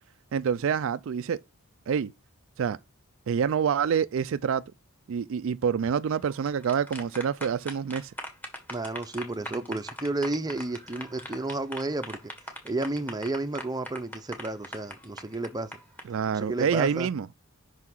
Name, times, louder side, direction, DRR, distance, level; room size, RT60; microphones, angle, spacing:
voice 1, 0.3-1.4 1.9-2.1 2.6-2.8 3.3-4.6 5.1-8.1 16.1-17.3, right 7 dB, 60° right, 0.3 m, -27 dB
sound 1, 6.3-16.0, equal, 10° left, 1.6 m, -40 dB
voice 2, 8.7-12.3 12.6-15.7 16.3-17.1, right 2 dB, 20° right, 0.6 m, -32 dB
5.7 x 5.6 x 6.1 m
head